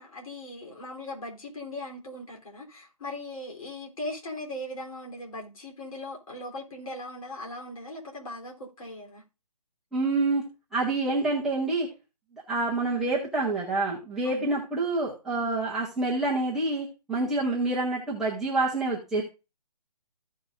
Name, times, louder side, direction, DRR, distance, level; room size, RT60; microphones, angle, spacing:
voice 1, 0.0-9.2 14.2-14.6, left 1 dB, 55° left, 3.5 m, -39 dB
voice 2, 9.9-10.4 10.7-11.9 12.5-19.2, right 2 dB, ahead, 0.8 m, -27 dB
15.0 x 5.4 x 2.5 m
hypercardioid pair, 170°, 21 cm